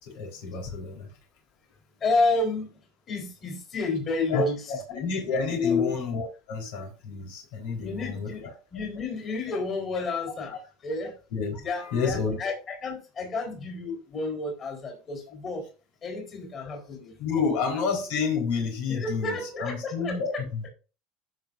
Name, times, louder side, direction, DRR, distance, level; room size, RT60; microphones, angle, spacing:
voice 1, 0.0-1.1 4.3-8.5 11.3-12.4 17.2-20.7, left 5 dB, 85° left, 4.1 m, -30 dB
voice 2, 2.0-2.7 3.1-4.6 4.9-5.1 5.5-5.9 7.8-8.4 8.7-11.2 11.6-15.7 16.0-17.1 17.5-17.6 18.9-20.2, left 3 dB, 30° left, 4.1 m, -30 dB
14.5 x 6.0 x 2.6 m
cardioid pair, 145°, 0 cm